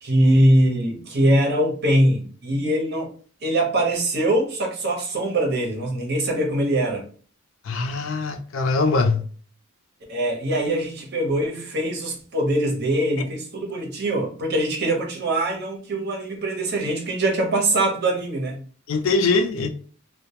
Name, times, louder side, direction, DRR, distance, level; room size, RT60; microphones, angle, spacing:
voice 1, 0.0-3.1 3.4-7.0 10.1-18.6, right 1 dB, 55° right, 0.8 m, -22 dB
voice 2, 7.6-9.2 18.9-19.7, left 3 dB, 70° left, 0.4 m, -22 dB
2.2 x 2.1 x 2.8 m
head